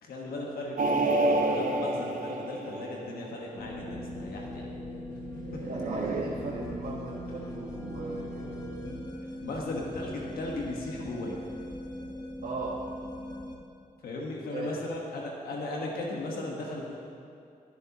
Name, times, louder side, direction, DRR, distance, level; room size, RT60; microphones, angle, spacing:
voice 1, 0.0-4.7 9.4-11.4 14.0-16.9, left 2 dB, 85° left, -2 dB, 1.4 m, -36 dB
sound 1, 0.8-3.4 5.5-6.2, right 2 dB, 60° right, 1.1 m, -28 dB
sound 2, 3.6-13.6, left 1 dB, 25° left, 1.3 m, -40 dB
voice 2, 5.6-8.6 12.4-12.8 14.5-14.7, right 3 dB, 85° right, -4 dB, 1.3 m, -37 dB
19.0 x 7.8 x 3.0 m, 2.5 s
cardioid pair, 65°, 15 cm